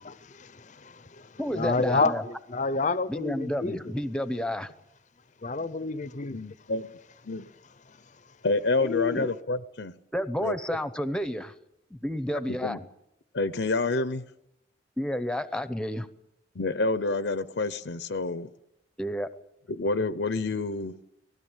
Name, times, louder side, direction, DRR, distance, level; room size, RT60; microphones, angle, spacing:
voice 1, 0.0-3.9 5.4-6.4 8.8-9.2, left 3 dB, 40° left, 0.7 m, -30 dB
voice 2, 1.4-2.2 3.1-4.7 9.1-9.3 10.1-11.5 11.9-12.8 15.0-16.1 19.0-19.3, equal, 5° left, 0.8 m, -30 dB
voice 3, 6.3-6.9 7.2-7.4 8.4-9.9 10.4-10.6 12.6-12.8 13.3-14.2 16.5-18.5 19.7-20.9, left 3 dB, 75° left, 0.8 m, -28 dB
19.0 x 16.0 x 9.0 m
head